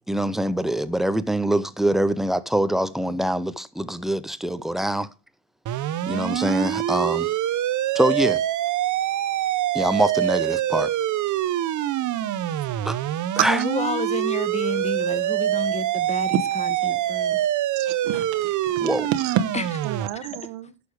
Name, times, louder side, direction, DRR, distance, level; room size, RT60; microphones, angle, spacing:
voice 1, 0.1-5.1 6.1-7.3 7.9-8.4 9.7-10.9 12.8-13.0 13.4-13.6 18.8-19.1, right 1 dB, ahead, 0.5 m, -24 dB
sound 1, 5.7-20.1, right 12 dB, 45° right, 0.8 m, -25 dB
voice 2, 13.5-17.4 19.5-19.6, left 4 dB, 15° left, 0.9 m, -30 dB
voice 3, 17.8-19.4 19.8-20.7, right 11 dB, 85° right, 1.2 m, -29 dB
11.0 x 6.9 x 4.8 m
cardioid pair, 145°, 42 cm